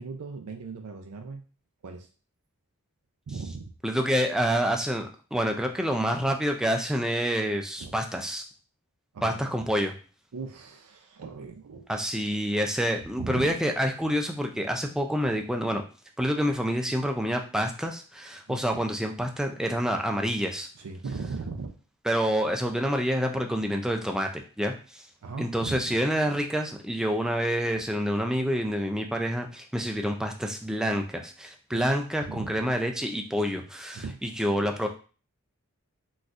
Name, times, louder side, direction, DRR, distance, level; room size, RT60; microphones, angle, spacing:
voice 1, 0.0-1.4 1.8-2.1 3.3-3.7 7.8-7.9 9.1-9.4 10.3-11.9 13.2-13.6 18.5-18.8 20.8-21.7 25.2-26.0 27.7-27.8 31.7-31.9 32.2-32.6 33.9-34.2, right 4 dB, 75° right, 4 dB, 0.4 m, -38 dB
voice 2, 3.8-8.4 9.2-9.9 11.9-15.8 16.2-20.7 22.1-25.0 25.4-34.9, equal, 5° right, 3 dB, 0.3 m, -27 dB
4.0 x 2.3 x 2.4 m, 0.36 s
head